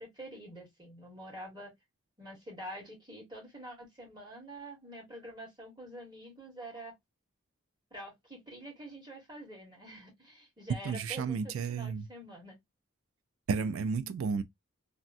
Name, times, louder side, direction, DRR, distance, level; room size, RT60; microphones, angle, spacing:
voice 1, 0.0-1.7 2.2-6.9 7.9-12.6, right 1 dB, 20° right, 1.5 m, -47 dB
voice 2, 10.8-12.1 13.5-14.4, right 5 dB, 75° right, 0.3 m, -32 dB
3.3 x 2.1 x 2.6 m
head